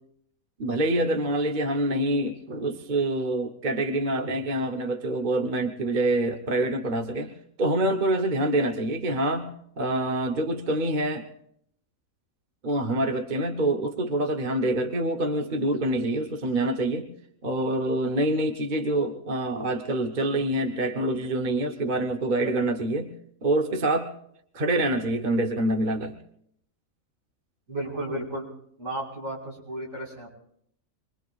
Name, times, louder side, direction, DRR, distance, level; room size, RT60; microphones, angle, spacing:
voice 1, 0.6-7.3 7.6-9.5 9.8-11.2 12.6-17.1 17.4-23.1 23.4-24.1 24.5-26.2, right 1 dB, 40° right, 4 dB, 1.0 m, -26 dB
voice 2, 27.7-28.5 28.8-30.3, right 1 dB, 65° right, -4 dB, 5.5 m, -33 dB
27.5 x 22.0 x 2.4 m, 0.69 s
omnidirectional pair, 1.5 m